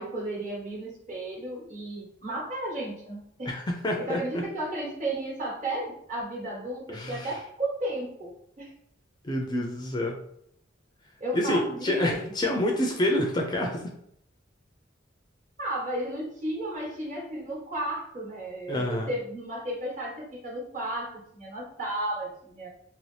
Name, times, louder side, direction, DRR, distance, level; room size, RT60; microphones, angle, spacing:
voice 1, 0.0-3.5 4.0-8.7 11.2-12.6 15.6-22.7, right 1 dB, 40° right, -3 dB, 1.2 m, -34 dB
voice 2, 3.5-4.4 6.9-7.3 9.2-10.2 11.3-13.8 18.7-19.1, left 1 dB, 20° left, 1 dB, 0.4 m, -27 dB
2.9 x 2.7 x 3.2 m, 0.71 s
head